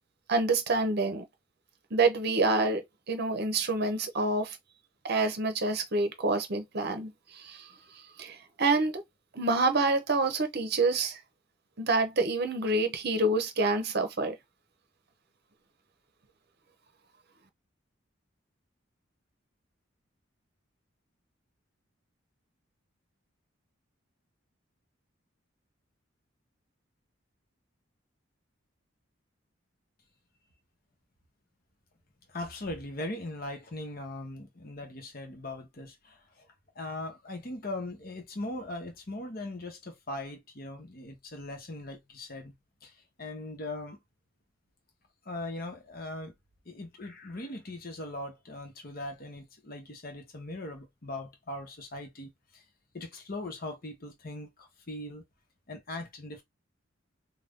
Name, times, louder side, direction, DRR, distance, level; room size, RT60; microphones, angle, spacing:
voice 1, 0.3-1.2 1.9-4.6 5.0-7.7 8.2-9.0 9.3-11.2 11.8-14.4, right 3 dB, 55° right, 0.7 m, -27 dB
voice 2, 32.3-36.2 36.7-42.5 42.8-44.0 45.3-46.3 46.7-52.6 52.9-55.2 55.7-56.4, left 2 dB, 45° left, 0.9 m, -40 dB
2.7 x 2.3 x 3.5 m
head